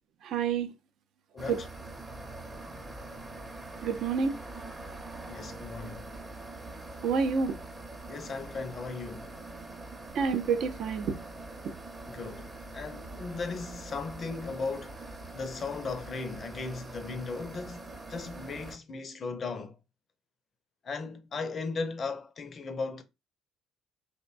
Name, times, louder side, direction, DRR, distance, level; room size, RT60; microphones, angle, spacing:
voice 1, 0.2-0.7 1.5-1.6 3.8-4.3 7.0-7.6 10.1-11.2 11.6-11.7, right 5 dB, 65° right, 0.4 m, -28 dB
voice 2, 1.3-1.7 5.3-6.1 8.1-9.3 12.1-12.5 12.7-15.0 15.3-19.8 20.8-23.0, left 4 dB, 45° left, 0.5 m, -37 dB
sound 1, 1.4-18.8, right 2 dB, 25° right, 0.7 m, -44 dB
2.5 x 2.1 x 2.4 m
hypercardioid pair, 60°, 0 cm